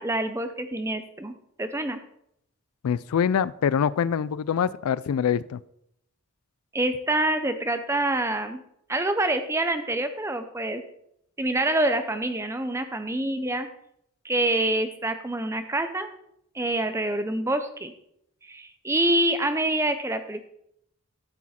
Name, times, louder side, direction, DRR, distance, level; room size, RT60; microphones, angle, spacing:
voice 1, 0.0-2.0 6.7-8.6 8.9-10.8 11.4-13.7 14.2-16.1 16.5-17.9 18.4-20.5, right 1 dB, 15° right, 9 dB, 0.6 m, -26 dB
voice 2, 2.8-5.6, left 7 dB, 90° left, 20 dB, 0.3 m, -24 dB
12.5 x 6.3 x 4.3 m, 0.75 s
head